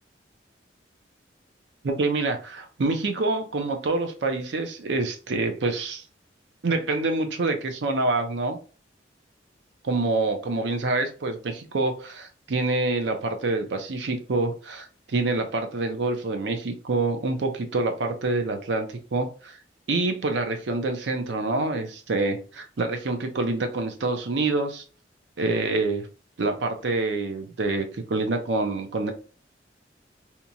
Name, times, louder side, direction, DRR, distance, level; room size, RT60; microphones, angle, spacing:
voice 1, 1.8-6.0 6.6-8.6 9.8-19.6 19.9-24.8 25.4-26.1 26.4-29.1, right 3 dB, 70° right, 0.5 m, -26 dB
2.8 x 2.3 x 2.5 m
head